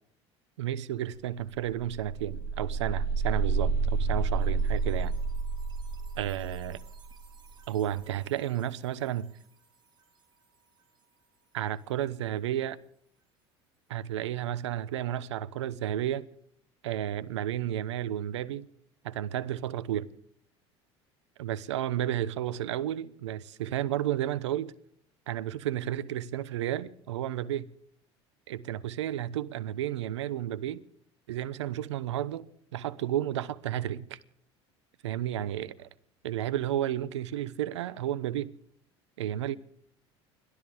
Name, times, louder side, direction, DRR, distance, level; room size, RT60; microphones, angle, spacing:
voice 1, 0.6-5.1 6.2-6.8 7.7-9.3 11.5-12.8 13.9-16.3 16.8-18.7 19.0-20.1 21.4-24.7 25.3-27.7 28.5-30.8 31.3-34.2 35.0-35.9 36.2-38.5 39.2-39.6, right 11 dB, 85° right, 0.9 m, -32 dB
sound 1, 1.1-1.2 1.5-8.3, right 4 dB, 30° right, 4.4 m, -31 dB
30.0 x 13.0 x 3.5 m
hypercardioid pair, 80°, 15 cm